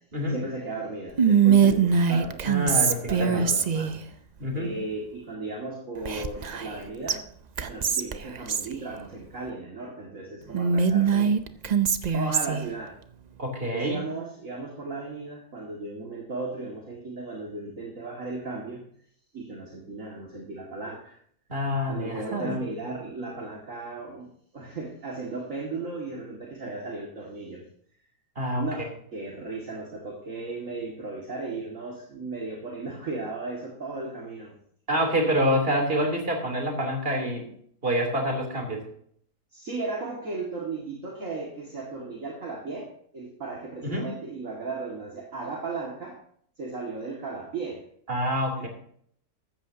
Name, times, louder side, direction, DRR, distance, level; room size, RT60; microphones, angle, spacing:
voice 1, 0.3-2.4 2.8-4.0 4.5-7.2 7.6-11.3 12.1-13.0 13.7-18.8 19.3-21.2 21.9-27.6 28.6-34.5 39.5-46.2 46.6-47.8 48.6-48.7, right 3 dB, 50° right, -2 dB, 2.4 m, -36 dB
Whispering, 1.2-4.0 6.0-6.8 7.1-7.2 7.6-8.7 10.5-12.7, right 6 dB, 90° right, 0.3 m, -22 dB
voice 2, 2.4-3.5 4.4-4.7 13.4-14.0 21.5-22.6 28.3-28.6 34.9-37.5 37.8-38.8 43.8-44.1 48.1-48.7, equal, 35° right, 2 dB, 3.4 m, -27 dB
14.5 x 13.5 x 2.8 m, 0.63 s
omnidirectional pair, 1.7 m